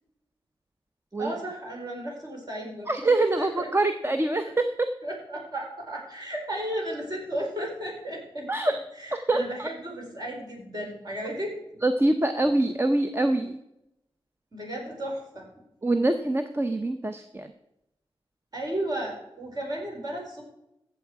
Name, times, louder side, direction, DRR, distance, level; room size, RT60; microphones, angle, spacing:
voice 1, 1.2-2.9 3.2-3.7 5.0-11.8 14.5-15.5 18.5-20.4, right 1 dB, 40° right, -1 dB, 4.8 m, -34 dB
voice 2, 2.9-4.9 8.5-8.8 9.3-9.7 11.8-13.6 15.8-17.5, right 2 dB, 25° right, 8 dB, 0.7 m, -25 dB
15.0 x 7.5 x 4.8 m, 0.86 s
wide cardioid pair, 75°, 10 cm